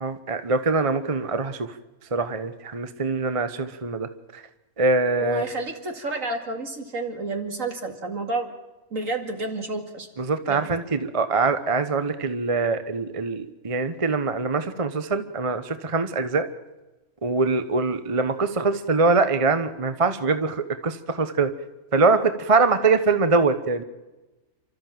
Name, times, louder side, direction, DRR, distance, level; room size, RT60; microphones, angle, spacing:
voice 1, 0.0-1.7 2.1-4.1 4.8-5.4 10.2-16.5 17.2-21.5 21.9-23.8, right 3 dB, 25° right, 10 dB, 1.0 m, -23 dB
voice 2, 5.2-8.5 8.9-10.1 10.4-10.7, right 3 dB, 60° right, 5 dB, 2.8 m, -30 dB
29.0 x 13.5 x 7.6 m, 1.1 s
omnidirectional pair, 1.5 m